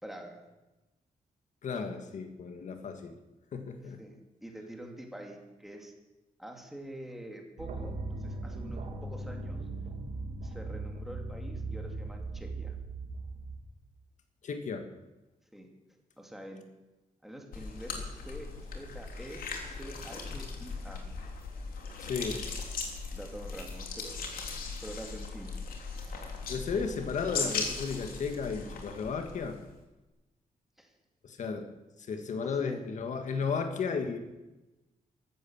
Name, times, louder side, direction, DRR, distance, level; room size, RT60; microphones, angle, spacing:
voice 1, 0.0-0.4 3.8-5.9 6.4-9.6 10.4-12.8 15.5-15.7 16.2-16.6 17.2-18.5 18.7-21.1 23.1-24.3 24.8-25.5 30.8-30.9 32.4-32.8, right 1 dB, ahead, 2 dB, 2.4 m, -46 dB
voice 2, 1.6-3.2 3.5-4.0 14.4-14.9 22.0-22.5 26.5-29.6 31.2-31.7 32.0-34.2, left 5 dB, 55° left, 7 dB, 1.9 m, -34 dB
sound 1, 7.6-13.6, right 2 dB, 65° right, 2.8 m, -38 dB
sound 2, 17.5-29.7, left 4 dB, 85° left, 3.3 m, -38 dB
15.0 x 13.0 x 7.3 m, 1.0 s
wide cardioid pair, 180°, 15 cm